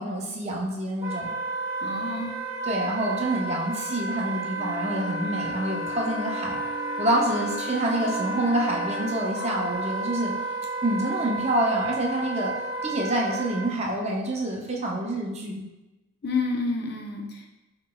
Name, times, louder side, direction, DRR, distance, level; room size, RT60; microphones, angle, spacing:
voice 1, 0.0-1.3 2.6-6.6 7.0-10.3 10.8-12.5 12.8-15.6, right 1 dB, 30° right, -1 dB, 0.5 m, -27 dB
Wind instrument woodwind instrument, 1.0-13.7, right 2 dB, 10° right, 1.4 m, -32 dB
voice 2, 1.8-2.4 9.4-9.6 16.2-17.5, left 3 dB, 45° left, 1 dB, 0.5 m, -30 dB
Wind instrument woodwind instrument 2, 4.5-9.4, left 2 dB, 80° left, 0.8 m, -38 dB
5.8 x 2.9 x 2.3 m, 1.0 s
head